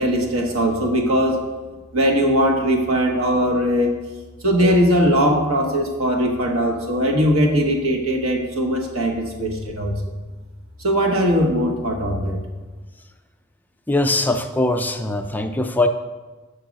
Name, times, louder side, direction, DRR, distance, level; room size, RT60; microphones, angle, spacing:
voice 1, 0.0-1.4 1.9-4.0 4.4-10.0 10.8-12.4, equal, 85° right, 1 dB, 1.2 m, -20 dB
voice 2, 13.9-15.9, left 2 dB, 10° left, 6 dB, 0.3 m, -21 dB
7.2 x 4.6 x 5.1 m, 1.3 s
head